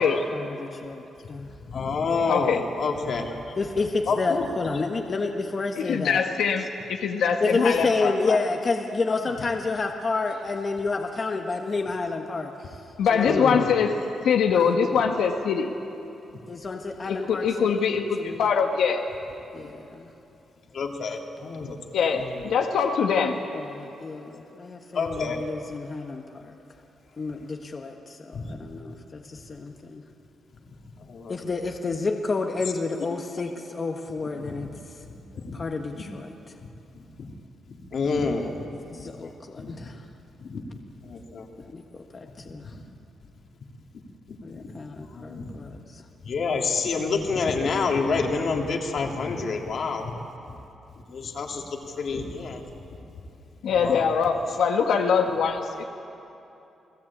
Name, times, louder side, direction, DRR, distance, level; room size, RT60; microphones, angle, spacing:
voice 1, 0.3-1.5 3.6-6.2 7.4-12.8 13.1-13.5 14.5-14.8 16.5-17.8 18.2-18.4 19.5-20.1 23.5-26.5 27.2-30.0 31.3-34.7 35.5-36.5 38.1-38.2 38.9-40.0 41.6-42.7 44.4-46.0, left 3 dB, 35° left, 3 dB, 1.4 m, -30 dB
voice 2, 1.7-3.4 4.1-4.5 13.3-13.7 20.7-22.4 24.9-25.4 28.3-28.5 31.1-31.3 34.5-34.6 35.3-35.6 37.2-37.3 37.9-38.5 38.9-39.3 40.4-40.6 41.1-41.5 44.5-44.7 45.1-45.5 46.2-50.1 51.1-51.6 52.0-52.6 53.7-54.0, left 4 dB, 55° left, 2 dB, 2.8 m, -28 dB
voice 3, 2.3-2.6 5.8-8.4 13.0-15.7 17.1-19.1 21.9-23.4 53.6-55.8, left 6 dB, 85° left, 3 dB, 1.5 m, -23 dB
29.0 x 18.5 x 8.7 m, 2.8 s
cardioid pair, 130°, 0 cm